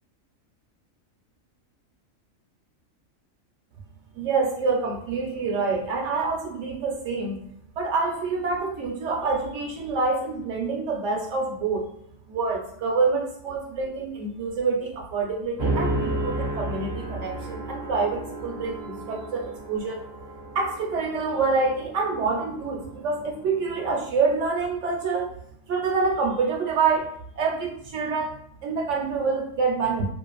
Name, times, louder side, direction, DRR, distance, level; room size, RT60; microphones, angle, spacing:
voice 1, 4.1-7.4 7.8-11.9 12.3-20.0 20.5-25.3 25.7-28.4 28.6-30.1, right 4 dB, 70° right, 0 dB, 0.9 m, -26 dB
sound 1, 15.6-24.0, right 1 dB, 40° right, 0.3 m, -33 dB
2.5 x 2.3 x 2.3 m, 0.69 s
omnidirectional pair, 1.4 m